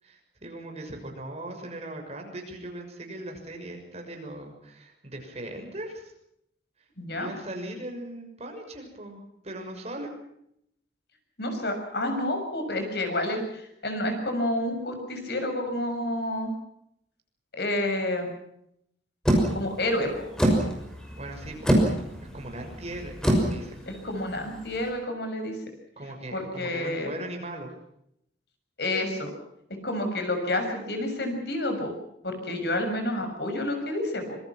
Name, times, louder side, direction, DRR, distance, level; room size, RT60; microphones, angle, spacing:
voice 1, 0.0-6.1 7.1-10.1 21.1-21.8 22.3-23.8 26.0-27.7, right 1 dB, 40° right, 3 dB, 6.4 m, -39 dB
voice 2, 7.0-7.3 11.4-16.5 17.5-18.3 19.5-20.2 23.9-25.6 26.3-27.1 28.8-29.3 29.8-31.9 32.2-34.4, left 1 dB, 65° left, 5 dB, 6.6 m, -29 dB
sound 1, 19.3-24.9, right 1 dB, 5° left, 6.1 m, -26 dB
25.5 x 24.0 x 6.0 m, 0.75 s
head